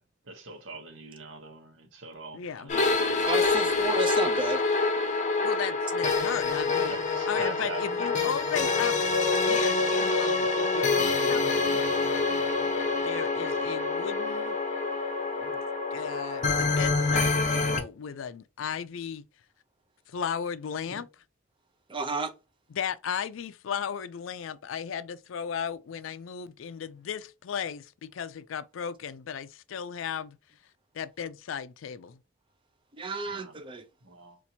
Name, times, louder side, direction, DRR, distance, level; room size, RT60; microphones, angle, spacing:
voice 1, 0.3-3.2 6.9-8.3 33.3-33.6 34.0-34.4, right 3 dB, 70° right, 1.0 m, -43 dB
voice 2, 2.3-2.8 5.4-6.9 7.3-9.2 9.5-12.2 13.0-14.6 15.4-15.6 15.9-19.2 20.1-21.2 22.7-30.4 30.9-32.2, left 7 dB, 80° left, 0.4 m, -36 dB
sound 1, 2.7-17.8, left 3 dB, 40° left, 0.7 m, -26 dB
voice 3, 3.3-4.6 21.9-22.3 33.0-33.8, right 2 dB, 25° right, 0.5 m, -31 dB
4.2 x 2.5 x 2.7 m
head